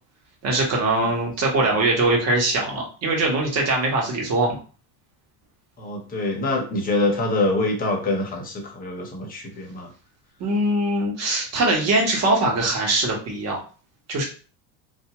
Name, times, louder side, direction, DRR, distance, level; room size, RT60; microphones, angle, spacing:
voice 1, 0.4-4.6 10.4-13.6 14.1-14.2, right 2 dB, 40° right, 0 dB, 1.2 m, -22 dB
voice 2, 5.8-9.9, left 2 dB, 20° left, 0 dB, 0.9 m, -25 dB
3.5 x 2.6 x 2.9 m, 0.37 s
cardioid pair, 145°, 42 cm